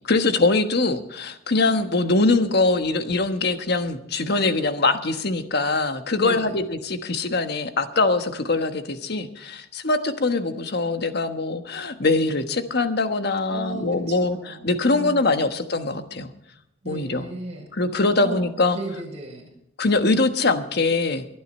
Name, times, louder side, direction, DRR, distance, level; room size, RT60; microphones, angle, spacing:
voice 1, 0.0-16.3 16.8-17.3 17.7-18.8 19.8-21.3, left 3 dB, 55° left, 8 dB, 1.3 m, -23 dB
voice 2, 6.1-6.6 13.5-15.5 16.8-17.7 18.1-18.4 18.7-19.5, right 1 dB, 35° right, -2 dB, 5.6 m, -35 dB
23.5 x 9.4 x 4.3 m, 0.80 s
head